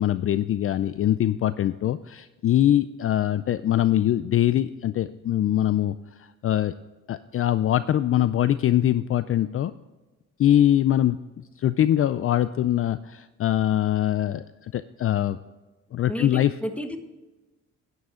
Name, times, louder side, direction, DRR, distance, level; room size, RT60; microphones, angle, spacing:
voice 1, 0.0-6.7 7.1-9.7 10.4-11.2 11.6-15.4 15.9-16.5, left 12 dB, 45° left, 14 dB, 0.4 m, -23 dB
voice 2, 16.1-17.0, equal, 5° left, 7 dB, 1.2 m, -32 dB
10.5 x 9.7 x 3.7 m, 1.2 s
cardioid pair, 90°, 30 cm